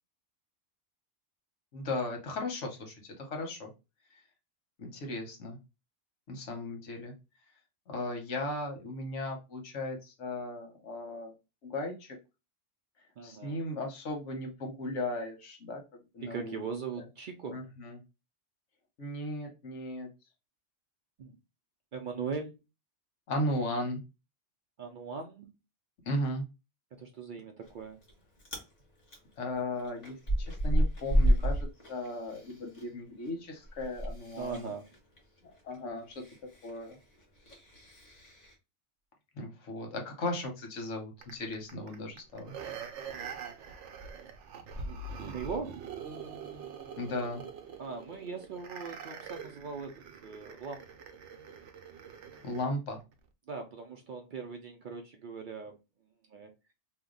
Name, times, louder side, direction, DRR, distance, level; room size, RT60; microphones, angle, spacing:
voice 1, 1.7-3.7 4.8-5.6 6.3-7.1 7.9-11.3 11.7-12.2 13.2-16.6 17.5-18.0 19.0-20.1 23.3-24.0 26.0-26.5 29.4-34.7 35.6-36.2 36.6-37.0 39.4-42.5 47.0-47.4 52.4-53.0, left 1 dB, 85° left, 1.3 m, -36 dB
voice 2, 13.2-13.6 16.2-17.6 21.2-21.4 21.9-22.6 24.8-25.6 26.9-28.0 34.4-34.9 44.8-45.8 47.8-50.0 50.2-50.8 53.5-55.8 56.3-56.5, right 5 dB, 60° right, 0.5 m, -40 dB
Chewing mastication, 27.6-28.1 28.4-28.7 29.1-32.8 33.1-38.5, equal, 40° left, 1.0 m, -31 dB
sound 1, 41.2-52.7 53.1-53.2, right 5 dB, 80° right, 0.9 m, -44 dB
2.8 x 2.1 x 3.7 m
omnidirectional pair, 1.2 m